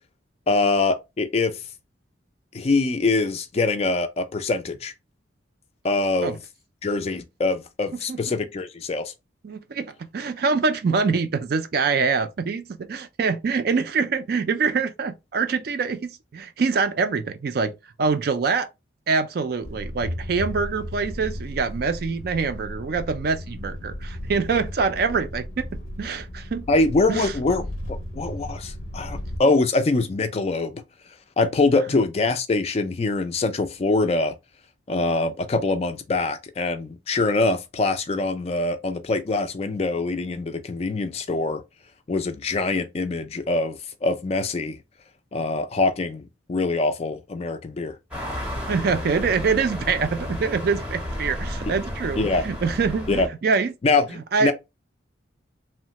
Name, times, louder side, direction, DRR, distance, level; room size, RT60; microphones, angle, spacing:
voice 1, 0.5-1.6 2.5-4.9 5.8-6.4 6.8-9.1 26.7-27.6 28.1-30.8 31.4-34.3 34.9-41.6 42.1-44.8 45.3-47.9 52.2-52.4 53.1-53.3 53.8-54.5, left 3 dB, 30° left, 0.3 m, -24 dB
voice 2, 9.4-18.7 19.1-25.7 26.0-26.7 27.1-27.3 48.7-53.7 54.3-54.5, right 5 dB, 50° right, 0.3 m, -25 dB
sound 1, 19.6-29.4, equal, 90° left, 0.6 m, -35 dB
sound 2, 48.1-53.3, left 1 dB, 5° right, 0.7 m, -32 dB
3.0 x 2.1 x 2.8 m
head